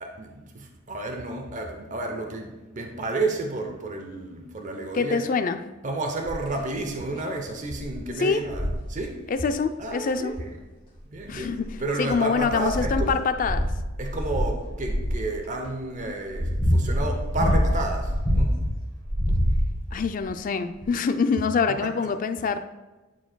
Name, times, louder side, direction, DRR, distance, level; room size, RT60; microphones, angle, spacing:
voice 1, 0.0-5.2 5.8-9.2 9.8-10.6 11.1-11.5 11.8-13.2 14.0-18.6, right 2 dB, 40° right, 3 dB, 0.7 m, -31 dB
voice 2, 4.9-5.6 8.2-8.4 9.3-10.3 11.3-11.7 12.0-13.7 19.9-22.6, left 5 dB, 40° left, 9 dB, 0.3 m, -25 dB
sound 1, 6.3-6.6 7.2-7.3 7.7-8.0 8.4-8.9 10.3-10.4 11.2-11.9 12.4-15.2 15.9-18.7 19.0-20.0 20.8-20.9, equal, 25° left, 1.6 m, -25 dB
10.0 x 4.5 x 2.2 m, 1.2 s
head